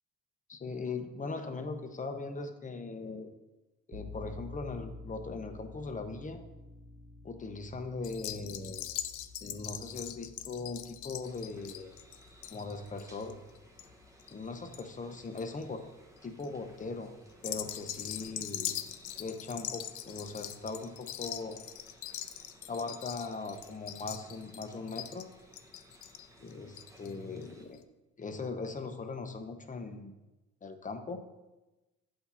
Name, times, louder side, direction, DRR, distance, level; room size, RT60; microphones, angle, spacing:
voice 1, 0.5-3.3 3.9-6.4 7.2-8.9 9.4-11.9 12.5-13.4 14.3-15.8 16.2-17.1 17.4-18.8 19.2-21.6 22.7-25.3 26.4-27.8 28.2-30.1 30.6-31.2, left 3 dB, 25° left, 7 dB, 0.7 m, -39 dB
sound 1, 3.9-15.2, left 3 dB, 45° right, 2.3 m, -51 dB
sound 2, 8.0-14.8 15.1-15.6 16.2-16.5 17.3-27.1 27.4-27.5 27.7-27.8, left 12 dB, 80° left, 0.5 m, -42 dB
sound 3, 11.2-27.7, right 1 dB, 10° right, 1.0 m, -59 dB
8.2 x 2.8 x 5.6 m, 1.1 s
cardioid pair, 90°, 30 cm